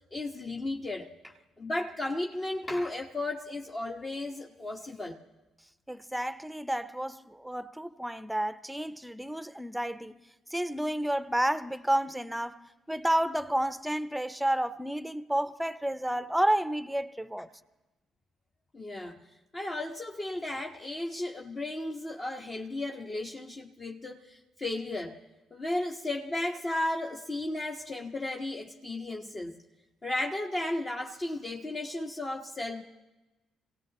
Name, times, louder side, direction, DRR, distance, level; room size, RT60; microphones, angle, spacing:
voice 1, 0.1-5.2 18.7-19.2 19.5-25.2 25.5-29.6 30.0-32.8, left 2 dB, 35° left, 1.1 m, -34 dB
voice 2, 5.9-10.2 10.5-12.6 12.9-17.5, right 1 dB, 5° right, 0.7 m, -30 dB
27.0 x 17.5 x 2.9 m
hypercardioid pair, 50°, 0 cm